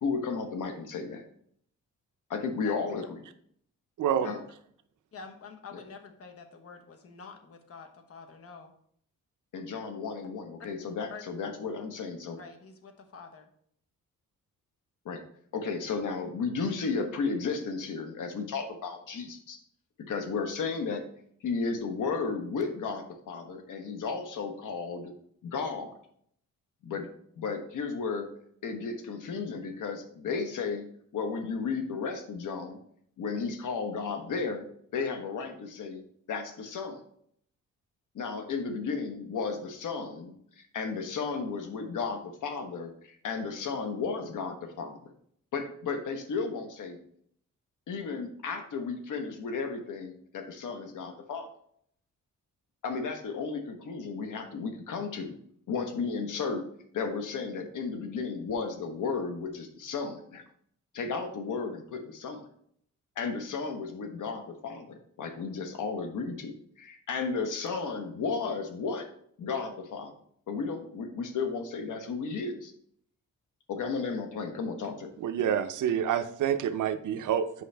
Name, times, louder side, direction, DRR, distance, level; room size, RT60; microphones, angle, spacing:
voice 1, 0.0-1.2 2.3-3.2 4.2-4.4 5.7-5.8 9.5-12.4 15.0-15.2 15.5-19.6 20.1-21.0 21.4-25.1 25.4-25.9 26.8-27.1 27.4-28.3 28.6-32.8 33.2-36.0 36.3-37.0 38.1-45.0 45.5-47.0 47.9-51.5 52.8-55.4 55.7-56.6 56.9-60.4 60.9-62.4 63.2-69.1 69.4-70.1 70.5-72.7 73.7-75.1, left 4 dB, 75° left, 6 dB, 1.2 m, -34 dB
voice 2, 4.0-4.3 75.2-77.6, right 9 dB, 75° right, 10 dB, 0.7 m, -28 dB
voice 3, 5.1-8.7 11.1-11.2 12.4-13.5, left 5 dB, 45° left, 5 dB, 1.1 m, -47 dB
8.1 x 5.5 x 3.4 m, 0.65 s
wide cardioid pair, 135°, 31 cm